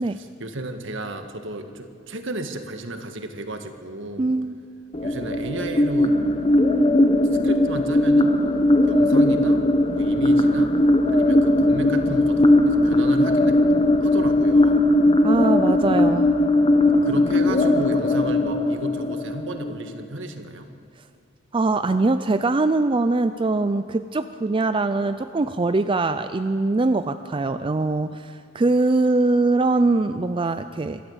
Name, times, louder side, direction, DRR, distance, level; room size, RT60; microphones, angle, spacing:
voice 1, 0.0-4.3 5.0-6.1 7.3-8.3 8.9-9.7 9.9-10.7 11.1-13.6 14.0-14.8 17.0-20.7, right 2 dB, 65° right, 6 dB, 1.7 m, -33 dB
voice 2, 4.2-4.6 15.2-16.4 21.5-31.0, right 3 dB, 25° right, 10 dB, 0.4 m, -22 dB
sound 1, 4.9-19.9, left 1 dB, 25° left, 1.2 m, -19 dB
26.5 x 13.0 x 8.0 m, 2.3 s
head